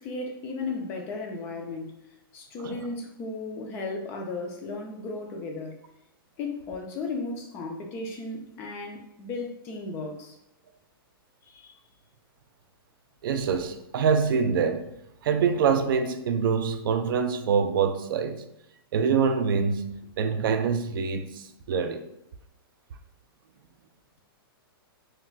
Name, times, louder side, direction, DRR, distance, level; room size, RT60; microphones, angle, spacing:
voice 1, 0.0-2.0 2.3-5.8 6.4-10.4 11.4-11.7, left 3 dB, 20° left, 0.3 m, -35 dB
voice 2, 13.2-14.9 15.2-18.4 18.9-19.9 20.2-22.0, right 6 dB, 65° right, 0.4 m, -25 dB
2.2 x 2.2 x 3.9 m
hypercardioid pair, 160°, 13 cm